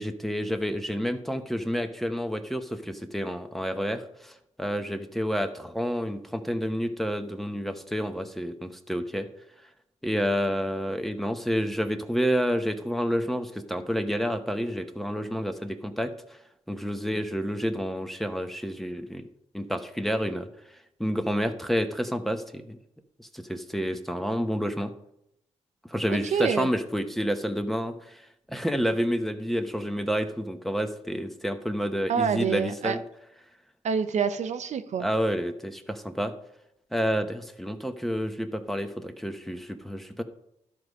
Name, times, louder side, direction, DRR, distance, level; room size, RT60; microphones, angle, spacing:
voice 1, 0.0-9.3 10.0-16.1 16.7-19.3 19.5-20.5 21.0-22.8 23.2-24.9 25.9-28.2 28.5-33.0 35.0-36.3 36.9-40.2, equal, ahead, 7 dB, 1.0 m, -29 dB
voice 2, 26.1-26.7 32.1-33.0 33.8-35.1, right 7 dB, 70° right, 10 dB, 0.6 m, -27 dB
12.0 x 4.8 x 5.3 m, 0.79 s
cardioid pair, 70°, 12 cm